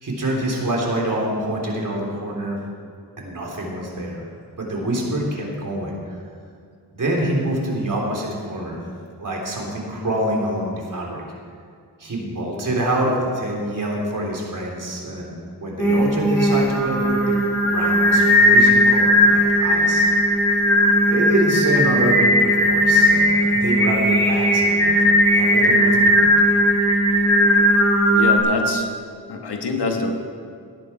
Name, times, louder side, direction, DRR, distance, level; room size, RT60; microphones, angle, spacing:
voice 1, 0.0-2.6 3.2-4.2 4.6-6.2 6.9-8.8 9.2-11.2 12.0-17.4 17.7-20.1 21.1-25.0 25.3-26.3, right 1 dB, 50° right, -2 dB, 3.2 m, -26 dB
Singing, 15.8-28.4, equal, 5° left, 3.6 m, -17 dB
voice 2, 28.1-28.9 29.3-30.1, left 3 dB, 80° left, 2 dB, 1.6 m, -25 dB
18.0 x 9.7 x 4.4 m, 2.2 s
wide cardioid pair, 90°, 40 cm